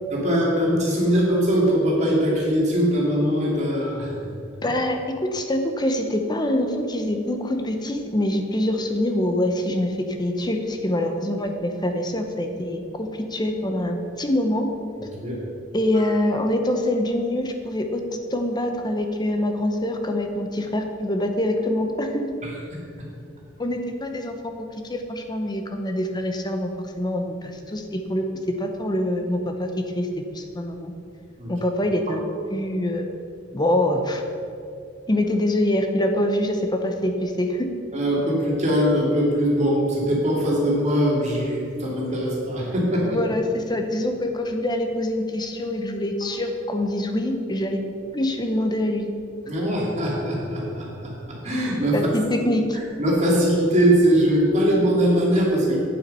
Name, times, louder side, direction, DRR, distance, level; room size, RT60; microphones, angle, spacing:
voice 1, 0.1-4.1 15.0-15.4 15.9-16.0 22.4-22.5 31.4-31.5 37.9-43.2 49.5-52.0 53.0-55.8, equal, 40° right, -4 dB, 2.5 m, -21 dB
voice 2, 4.6-14.7 15.7-18.0 18.3-22.3 23.6-24.3 24.8-26.7 27.0-28.2 28.6-29.7 29.9-30.1 30.3-30.9 31.5-32.2 32.5-33.1 33.5-34.2 35.1-37.7 43.1-47.8 48.1-49.1 51.9-52.8, left 1 dB, 20° left, 5 dB, 0.8 m, -25 dB
8.8 x 7.4 x 5.5 m, 2.5 s
head